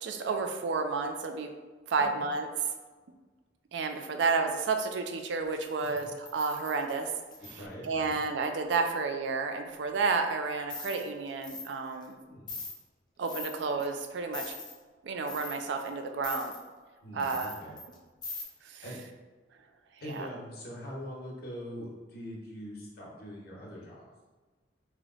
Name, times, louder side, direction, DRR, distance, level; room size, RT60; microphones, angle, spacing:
voice 1, 0.0-1.5 1.9-2.5 3.7-7.1 7.5-12.2 13.2-14.5 15.0-16.5 17.1-17.5 18.6-18.8 20.1-20.3, right 4 dB, 70° right, 5 dB, 0.3 m, -31 dB
sound 1, 5.5-7.6 10.7-11.1 11.4-11.7 12.0-12.1 12.5-12.7 13.2-13.8 14.3-14.7 15.2-15.9 16.2-16.6 17.2-17.9 18.2-18.4, left 3 dB, 25° left, 0.6 m, -41 dB
voice 2, 7.4-8.2 12.3-12.5 17.0-17.8 18.8-19.0 20.0-24.1, equal, 55° left, -4 dB, 0.9 m, -43 dB
3.1 x 2.0 x 3.7 m, 1.3 s
head